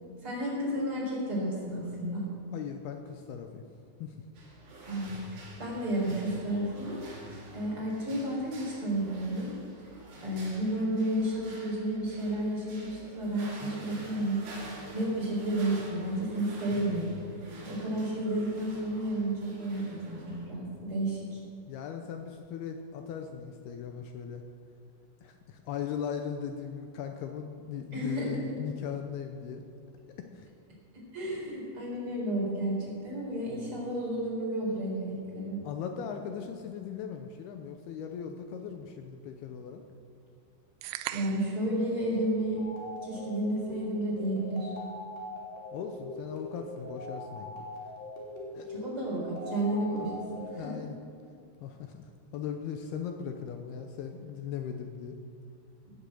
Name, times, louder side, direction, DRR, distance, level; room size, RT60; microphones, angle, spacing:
voice 1, 0.2-2.2 4.9-7.0 7.5-9.5 10.2-14.4 14.9-17.2 17.6-21.4 27.9-28.4 30.9-35.6 41.1-42.6 43.0-44.7 48.7-50.8, right 1 dB, 30° right, -4 dB, 4.6 m, -32 dB
voice 2, 2.5-3.6 4.0-4.2 21.7-24.4 25.2-29.6 30.2-30.5 35.6-39.8 45.7-47.5 48.5-48.7 50.5-51.0 51.6-55.2, left 7 dB, 80° left, 5 dB, 2.6 m, -38 dB
sound 1, 4.3-20.5, right 2 dB, 60° right, 4.4 m, -48 dB
sound 2, 40.8-41.6, right 13 dB, 80° right, 2.6 m, -38 dB
sound 3, 42.6-50.5, left 2 dB, 55° left, 4.7 m, -42 dB
17.0 x 8.3 x 7.7 m, 2.5 s
omnidirectional pair, 4.9 m